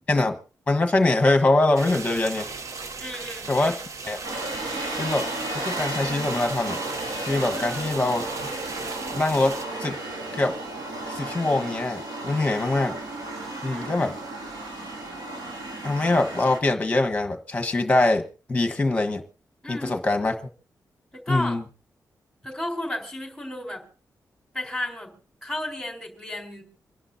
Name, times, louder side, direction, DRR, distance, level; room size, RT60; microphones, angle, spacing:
voice 1, 0.7-2.5 3.5-4.2 5.0-5.2 5.5-6.8 7.2-8.2 9.1-10.0 10.3-10.6 11.1-12.9 13.6-14.1 15.8-19.2 19.7-20.5 21.3-21.6, left 2 dB, 20° left, 5 dB, 1.3 m, -23 dB
sound 1, 1.8-9.7, right 4 dB, 50° right, 0.9 m, -37 dB
voice 2, 3.0-3.5 7.5-8.0 13.7-14.3 19.6-20.0 21.1-21.6 22.4-23.8 24.5-25.1 25.4-26.6, left 1 dB, ahead, -1 dB, 4.0 m, -33 dB
sound 2, 4.2-16.6, right 2 dB, 85° right, 3.2 m, -33 dB
26.5 x 11.0 x 2.7 m, 0.35 s
wide cardioid pair, 170°, 7 cm